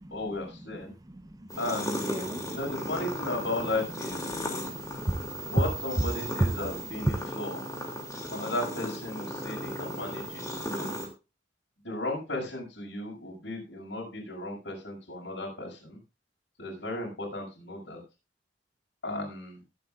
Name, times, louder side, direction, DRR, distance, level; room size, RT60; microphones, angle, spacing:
voice 1, 0.1-0.9 1.6-2.1 2.5-4.4 5.5-7.6 8.3-10.4 10.7-10.9 11.8-16.0 16.6-18.0 19.0-19.6, left 2 dB, 80° left, 6.1 m, -35 dB
voice 2, 1.1-1.6 2.0-2.6 4.3-5.2 6.4-6.5 7.1-7.3, right 1 dB, 20° right, 0.7 m, -32 dB
sound 1, 1.5-11.1, equal, 20° left, 2.8 m, -36 dB
22.0 x 7.9 x 2.5 m
head